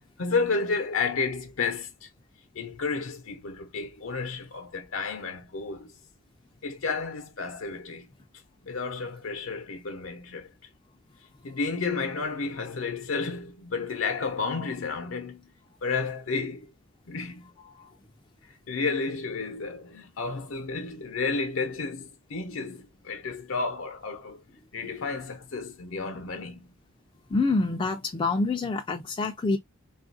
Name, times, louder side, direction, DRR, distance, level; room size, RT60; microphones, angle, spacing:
voice 1, 0.2-2.1 2.5-5.9 6.6-8.1 8.6-10.5 11.4-15.5 15.8-16.7 17.1-17.5 18.4-24.4 24.7-26.7, left 4 dB, 70° left, 0.6 m, -31 dB
voice 2, 27.3-29.6, left 3 dB, 25° left, 0.4 m, -26 dB
3.5 x 2.4 x 2.5 m
head